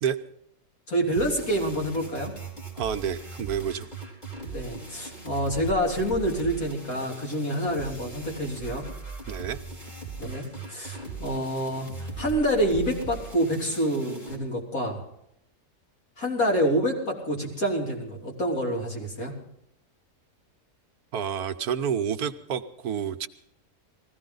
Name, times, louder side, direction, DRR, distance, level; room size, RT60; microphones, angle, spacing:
voice 1, 0.9-2.3 4.5-8.9 10.2-15.0 16.2-19.3, equal, 60° left, -2 dB, 4.2 m, -27 dB
sound 1, 1.1-14.4, right 3 dB, 30° left, 4.5 m, -39 dB
voice 2, 2.7-3.9 9.3-9.6 21.1-23.3, right 8 dB, 70° right, 9 dB, 1.2 m, -29 dB
20.5 x 15.5 x 3.9 m, 0.80 s
omnidirectional pair, 1.7 m